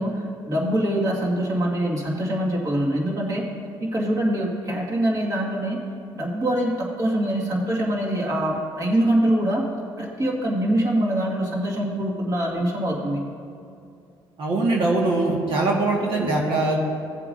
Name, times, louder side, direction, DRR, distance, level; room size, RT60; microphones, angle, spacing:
voice 1, 0.0-3.4 3.8-5.8 6.1-9.6 10.0-13.2, right 1 dB, 40° right, -3 dB, 1.9 m, -24 dB
voice 2, 14.4-16.8, right 2 dB, 65° right, -3 dB, 1.6 m, -22 dB
16.5 x 7.5 x 2.6 m, 2.5 s
cardioid pair, 90°, 10 cm